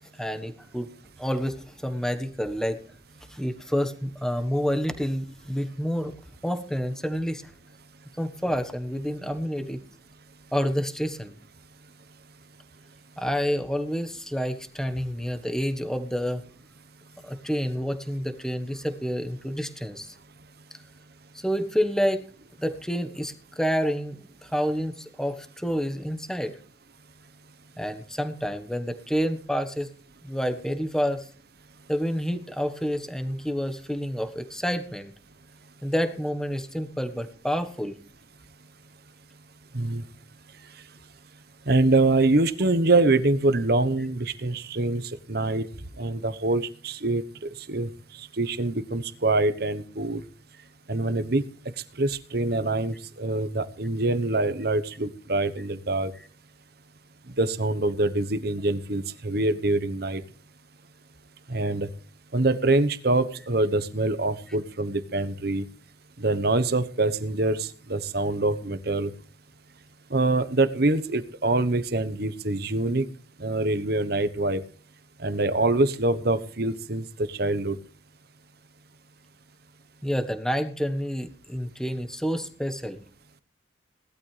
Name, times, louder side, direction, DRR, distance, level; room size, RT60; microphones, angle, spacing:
voice 1, 0.2-0.9 1.2-2.8 3.3-6.1 6.4-7.5 8.2-9.8 10.5-11.4 13.2-16.4 17.2-20.2 21.3-22.2 22.6-26.6 27.8-29.9 30.2-31.3 31.9-35.1 35.8-38.0 80.0-83.0, equal, 5° left, 9 dB, 1.4 m, -28 dB
voice 2, 41.7-45.7 46.0-47.2 47.7-47.9 48.2-50.2 50.9-51.4 52.0-56.1 57.4-60.2 61.5-61.9 62.3-65.6 66.2-69.1 70.1-73.1 73.4-74.6 75.2-77.8, right 2 dB, 55° right, 13 dB, 1.1 m, -25 dB
18.5 x 12.5 x 3.4 m, 0.42 s
head